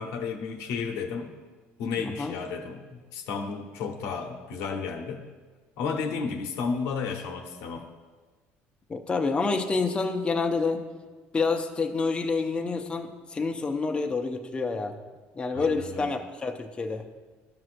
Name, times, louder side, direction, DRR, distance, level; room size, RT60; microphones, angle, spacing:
voice 1, 0.0-1.4 1.8-5.2 5.8-7.9 15.5-16.1, left 5 dB, 85° left, 4 dB, 0.8 m, -32 dB
voice 2, 2.0-2.4 8.9-10.8 11.3-14.9 15.4-17.0, left 4 dB, 20° left, 4 dB, 0.5 m, -28 dB
12.5 x 6.1 x 2.5 m, 1.3 s
cardioid pair, 115°, 5 cm